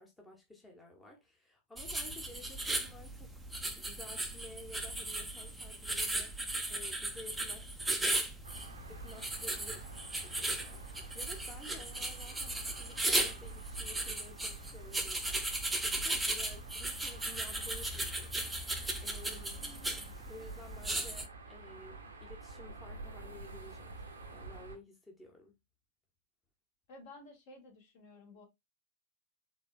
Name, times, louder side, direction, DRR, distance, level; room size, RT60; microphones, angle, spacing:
voice 1, 0.0-8.4 8.9-9.9 10.2-19.6 20.3-24.0 24.3-25.6, left 2 dB, 10° left, 1.0 m, -53 dB
sound 1, 1.8-21.3, right 2 dB, 5° right, 0.6 m, -36 dB
sound 2, 8.4-24.8, right 3 dB, 70° right, 0.9 m, -49 dB
voice 2, 26.9-28.4, left 2 dB, 55° left, 1.9 m, -53 dB
4.2 x 3.4 x 2.3 m
figure-of-eight pair, 90°, 0 cm